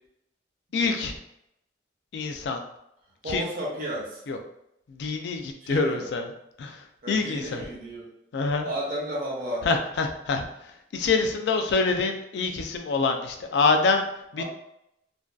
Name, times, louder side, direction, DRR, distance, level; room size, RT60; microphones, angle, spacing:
voice 1, 0.7-1.2 2.1-2.6 3.3-3.4 4.3-4.4 4.9-6.3 6.6-7.6 8.3-8.7 9.6-10.4 10.9-14.0 14.3-14.4, left 4 dB, 75° left, 5 dB, 0.3 m, -26 dB
voice 2, 3.2-4.2 5.6-6.1 7.0-8.1 8.6-9.7 14.4-14.5, equal, 50° right, -3 dB, 0.6 m, -33 dB
2.5 x 2.3 x 2.2 m, 0.80 s
head